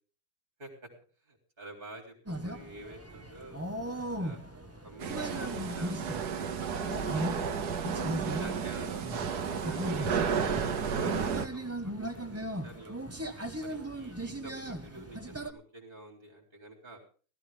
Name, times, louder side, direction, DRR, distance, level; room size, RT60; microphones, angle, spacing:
voice 1, 1.3-3.6 4.2-4.4 4.8-7.8 8.3-13.0 13.6-17.0, right 1 dB, 35° right, 1 dB, 3.8 m, -49 dB
sound 1, 2.3-15.5, right 1 dB, 10° right, 1.3 m, -38 dB
sound 2, 5.0-11.5, right 6 dB, 80° right, 1.7 m, -32 dB
17.0 x 14.0 x 3.6 m, 0.39 s
omnidirectional pair, 1.7 m